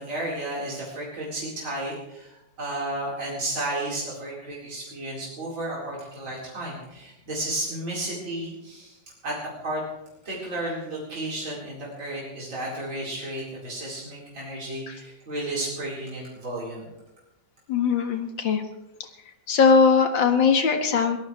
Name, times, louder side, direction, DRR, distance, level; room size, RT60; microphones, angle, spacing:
voice 1, 0.0-8.9 9.2-9.3 9.6-9.8 10.2-16.9, right 1 dB, 80° right, -6 dB, 5.1 m, -33 dB
voice 2, 17.7-18.6 19.5-21.2, left 5 dB, 75° left, 5 dB, 2.4 m, -20 dB
23.0 x 18.0 x 3.3 m, 0.92 s
omnidirectional pair, 2.1 m